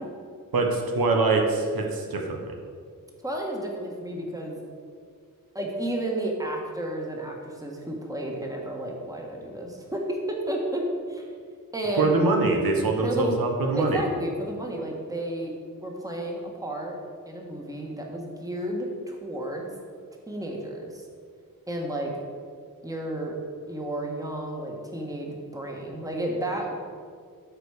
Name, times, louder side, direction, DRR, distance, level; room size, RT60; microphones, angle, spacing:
voice 1, 0.5-2.4 12.0-14.0, right 3 dB, 85° right, 1 dB, 1.3 m, -23 dB
voice 2, 3.2-4.6 5.5-11.3 11.7-12.1 13.0-13.4 13.7-15.5 15.8-17.0 17.3-19.7 20.3-21.0 21.7-22.1 22.8-23.3 23.7-26.8, right 1 dB, 10° right, 0 dB, 1.4 m, -32 dB
13.0 x 5.1 x 4.9 m, 2.1 s
wide cardioid pair, 130°, 35 cm